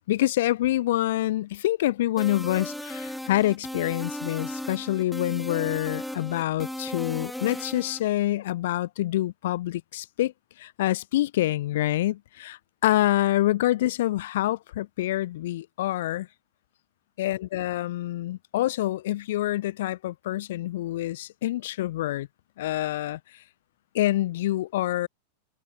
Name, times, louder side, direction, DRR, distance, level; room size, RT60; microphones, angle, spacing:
voice 1, 0.1-10.3 10.6-16.3 17.2-22.3 22.6-23.4 23.9-25.1, left 15 dB, 55° left, 1.6 m, -26 dB
sound 1, 2.2-8.0, left 1 dB, ahead, 1.4 m, -36 dB
figure-of-eight pair, 90°, 0 cm